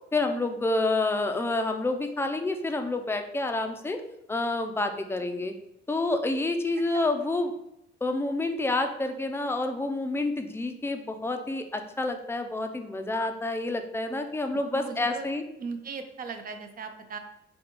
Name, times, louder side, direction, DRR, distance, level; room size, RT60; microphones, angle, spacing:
voice 1, 0.1-4.0 4.3-5.5 5.9-7.5 8.0-15.4, left 2 dB, 10° left, 6 dB, 0.4 m, -28 dB
voice 2, 14.5-15.3 15.6-17.2, right 5 dB, 45° right, 7 dB, 0.5 m, -38 dB
5.0 x 2.3 x 3.0 m, 0.81 s
cardioid pair, 90°, 20 cm